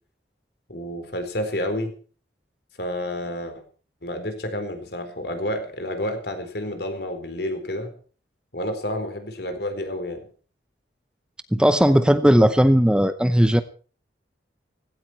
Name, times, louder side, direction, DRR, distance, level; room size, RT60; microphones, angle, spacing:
voice 1, 0.7-1.9 2.8-3.6 4.0-7.9 8.5-10.2, left 1 dB, 60° left, 7 dB, 4.1 m, -30 dB
voice 2, 11.5-13.6, equal, 5° right, 11 dB, 0.7 m, -17 dB
17.0 x 16.5 x 4.5 m, 0.40 s
head